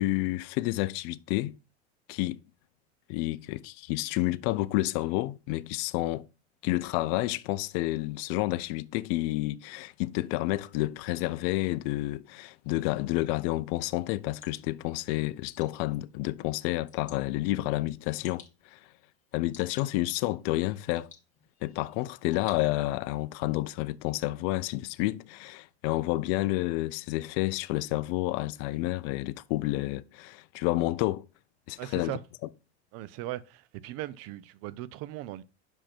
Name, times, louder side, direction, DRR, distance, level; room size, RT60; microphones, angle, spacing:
voice 1, 0.0-1.6 2.1-2.4 3.1-6.2 6.6-18.4 18.7-18.8 19.3-21.1 21.6-31.2 31.7-32.2, left 18 dB, 50° left, 0.6 m, -30 dB
Water / Drip, 13.8-23.1, left 7 dB, 25° left, 1.6 m, -56 dB
voice 2, 31.8-32.2 32.9-35.4, right 15 dB, 45° right, 0.6 m, -38 dB
5.8 x 5.2 x 4.4 m
hypercardioid pair, 110°, 33 cm